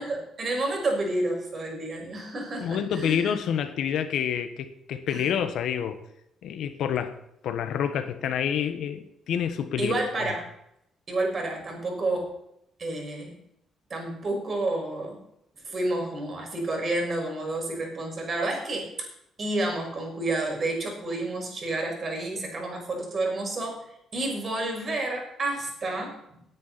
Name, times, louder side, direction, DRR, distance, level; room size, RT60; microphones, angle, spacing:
voice 1, 0.0-3.3 5.1-5.3 9.8-10.4 11.1-12.3 12.8-13.3 13.9-15.2 15.6-19.1 19.4-23.8 24.1-26.1, right 2 dB, 40° right, 1 dB, 6.1 m, -30 dB
voice 2, 2.6-6.0 6.4-7.2 7.4-9.9 10.2-10.3, left 8 dB, 75° left, 9 dB, 1.4 m, -28 dB
18.5 x 9.7 x 4.3 m, 0.79 s
cardioid pair, 100°, 0 cm